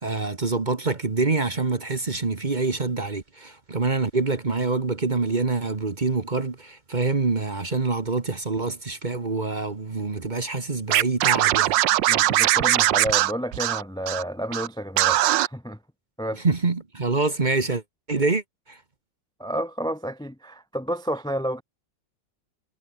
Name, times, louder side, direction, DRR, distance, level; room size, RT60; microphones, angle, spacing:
voice 1, 0.0-11.8 16.4-17.8 18.1-18.8, right 3 dB, 30° right, 1.3 m, -26 dB
Scratching (performance technique), 10.9-14.2 14.5-14.7 15.0-15.5, right 14 dB, 85° right, 1.4 m, -20 dB
voice 2, 12.1-15.8 16.2-16.4 19.4-21.6, equal, 5° left, 0.7 m, -30 dB
omnidirectional pair, 2.0 m